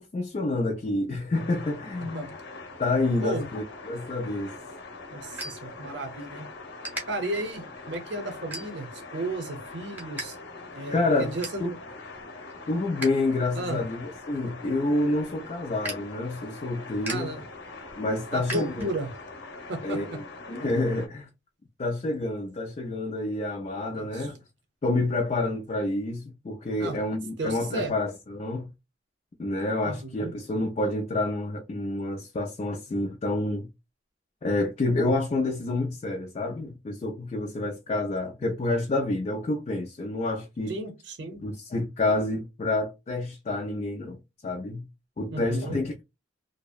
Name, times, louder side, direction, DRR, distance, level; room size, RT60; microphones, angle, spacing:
voice 1, 0.0-2.4 2.8-4.6 10.9-11.3 11.6-11.7 12.7-17.3 18.0-18.9 19.8-20.2 20.5-21.3 21.8-24.4 24.8-28.7 29.4-33.7 34.4-40.8 41.4-44.9 45.2-46.0, left 2 dB, 35° left, 0.3 m, -28 dB
sound 1, 1.3-21.1, left 3 dB, 60° left, 0.7 m, -43 dB
sound 2, 4.2-6.3 6.8-7.0 7.6-7.8 8.5-9.1 9.5-10.3 10.6-10.7 11.0-11.7 12.1-13.2 13.5-19.2, right 1 dB, 10° right, 0.7 m, -40 dB
voice 2, 5.1-6.5 7.1-10.4 10.7-11.8 13.5-13.8 17.1-17.5 18.3-19.1 19.7-20.0 23.9-24.3 26.8-27.0 27.4-27.9 29.8-30.3 40.7-41.4 45.3-45.8, right 2 dB, 60° right, 0.7 m, -34 dB
2.6 x 2.0 x 2.3 m
head